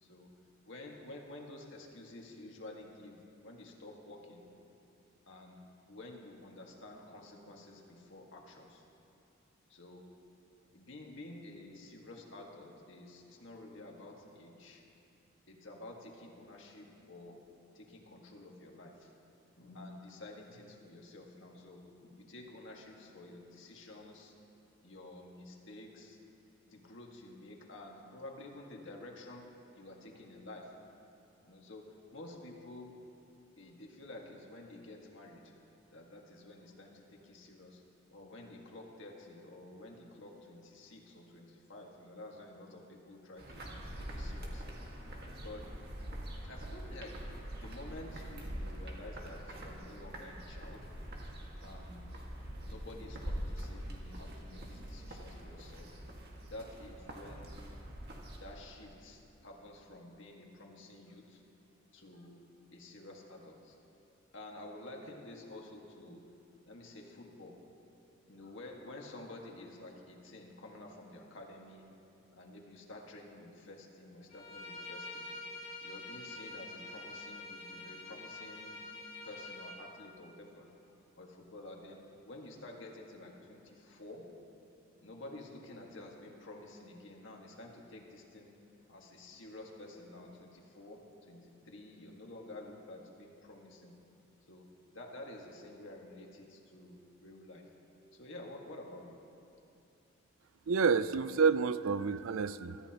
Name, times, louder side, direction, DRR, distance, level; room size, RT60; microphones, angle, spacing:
voice 1, 0.0-4.5 5.3-8.8 9.7-10.1 10.7-14.8 15.5-17.4 17.7-19.1 19.6-24.3 24.8-26.2 26.7-29.5 29.8-30.7 31.5-33.0 33.6-35.5 35.9-37.8 38.1-44.9 45.4-45.7 46.4-47.2 47.6-50.9 51.6-52.1 52.6-56.0 56.5-57.7 58.4-61.4 61.9-62.4 62.7-63.8 64.3-66.2 66.7-67.6 68.3-71.9 72.3-75.3 75.8-78.8 79.3-80.7 81.2-84.3 85.0-88.5 88.9-94.0 94.5-97.7 98.1-99.2, left 2 dB, 65° left, 0 dB, 1.8 m, -50 dB
sound 1, 43.4-58.5, equal, 50° right, 1.8 m, -44 dB
Bowed string instrument, 74.3-79.8, left 2 dB, 35° left, 2.2 m, -46 dB
voice 2, 100.7-102.8, right 5 dB, 90° right, 14 dB, 0.5 m, -29 dB
23.0 x 13.5 x 3.0 m, 2.8 s
head